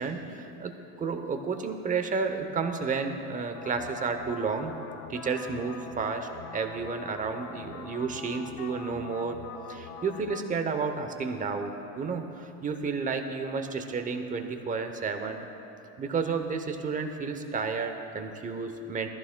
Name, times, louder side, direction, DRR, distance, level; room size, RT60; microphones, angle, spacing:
voice 1, 0.0-4.7 5.1-9.4 9.7-15.4 16.0-19.1, right 5 dB, 20° right, 6 dB, 0.7 m, -31 dB
sound 1, 3.5-10.4, left 7 dB, 60° left, 1.1 m, -44 dB
20.5 x 14.5 x 2.2 m, 2.9 s
supercardioid pair, 140°, 40 cm